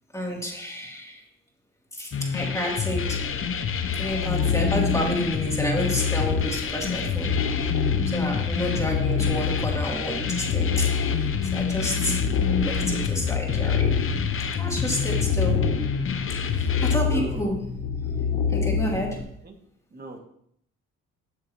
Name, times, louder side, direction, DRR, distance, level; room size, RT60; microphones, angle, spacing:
voice 1, 0.1-1.2 1.9-3.3 4.0-7.3 8.1-11.0 11.5-13.9 14.6-15.7 16.5-17.7 18.5-19.2, equal, 10° left, -2 dB, 3.0 m, -30 dB
sound 1, 2.1-17.0, left 7 dB, 45° left, 0.9 m, -28 dB
sound 2, 2.9-19.2, left 6 dB, 85° left, 1.7 m, -27 dB
voice 2, 17.1-17.5 19.4-19.5 19.9-20.2, right 3 dB, 30° right, 2 dB, 2.2 m, -39 dB
12.5 x 7.3 x 3.1 m, 0.70 s
cardioid pair, 90°, 30 cm